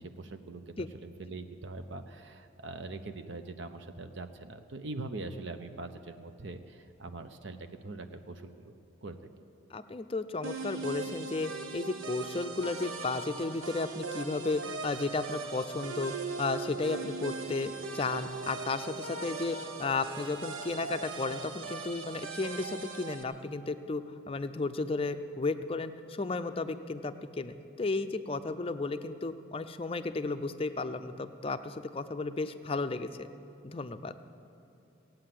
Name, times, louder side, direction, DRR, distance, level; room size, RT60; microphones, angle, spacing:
voice 1, 0.0-8.7 9.0-9.2, right 3 dB, 60° right, 7 dB, 0.7 m, -42 dB
voice 2, 9.7-33.3 33.6-34.1, left 3 dB, 25° left, 10 dB, 0.5 m, -34 dB
sound 1, 10.4-23.2, right 4 dB, 85° right, 1.1 m, -40 dB
17.5 x 8.9 x 7.6 m, 2.7 s
head